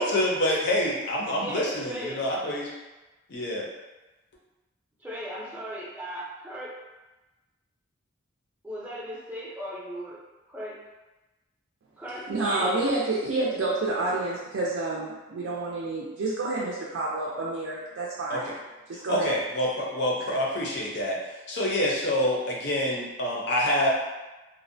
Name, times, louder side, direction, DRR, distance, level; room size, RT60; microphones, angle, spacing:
voice 1, 0.0-2.7 3.3-3.6 18.3-18.5 19.1-21.2 21.5-23.9, left 1 dB, 55° left, -3 dB, 0.6 m, -26 dB
voice 2, 1.4-2.2 5.0-6.7 8.6-10.2 10.5-10.8 12.0-12.9, equal, 10° right, -7 dB, 0.5 m, -37 dB
voice 3, 12.3-18.5 18.9-19.4 20.3-20.4, right 2 dB, 75° right, -5 dB, 0.4 m, -29 dB
2.5 x 2.0 x 2.6 m, 1.1 s
head